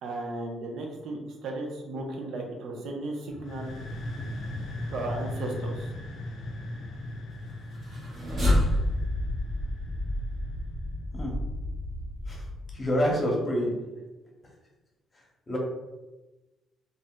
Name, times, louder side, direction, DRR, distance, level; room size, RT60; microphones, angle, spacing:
voice 1, 0.0-3.7 4.9-5.9, right 2 dB, 75° right, 1 dB, 0.6 m, -35 dB
sound 1, 3.3-10.9, left 1 dB, 70° left, 0.4 m, -38 dB
sound 2, 7.7-13.1, left 1 dB, 55° right, 1.0 m, -29 dB
voice 2, 12.7-13.7 15.5-15.6, equal, 30° left, -1 dB, 0.9 m, -27 dB
2.5 x 2.1 x 3.7 m, 1.1 s
cardioid pair, 90°, 0 cm